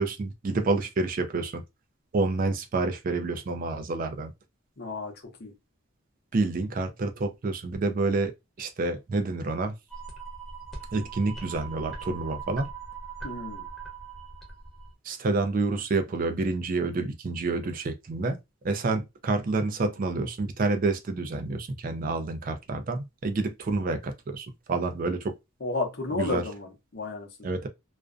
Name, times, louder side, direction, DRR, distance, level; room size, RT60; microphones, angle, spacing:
voice 1, 0.0-1.6 2.1-4.3 6.3-8.3 8.6-9.7 10.9-12.7 15.1-18.4 18.6-25.3 26.1-26.4 27.4-27.7, right 3 dB, 40° right, 0.4 m, -28 dB
voice 2, 4.8-5.1 5.4-5.5 13.2-13.7 25.6-27.5, left 3 dB, 50° left, 0.7 m, -32 dB
sound 1, 9.9-14.9, right 5 dB, ahead, 0.6 m, -40 dB
2.4 x 2.1 x 2.4 m
head